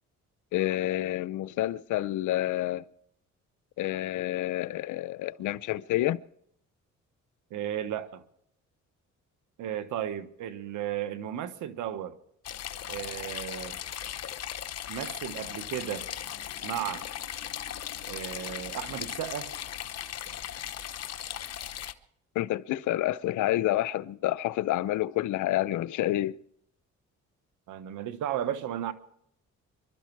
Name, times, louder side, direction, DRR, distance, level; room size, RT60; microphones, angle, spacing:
voice 1, 0.5-2.9 3.8-6.2 22.4-26.4, left 15 dB, 80° left, 0.6 m, -28 dB
voice 2, 7.5-8.2 9.6-12.2 12.9-13.8 14.9-16.1 16.6-17.1 18.0-19.5 27.7-28.9, right 10 dB, 85° right, 1.3 m, -34 dB
sound 1, 12.4-21.9, left 10 dB, 55° left, 1.0 m, -38 dB
25.5 x 12.0 x 4.7 m
cardioid pair, 90°, 30 cm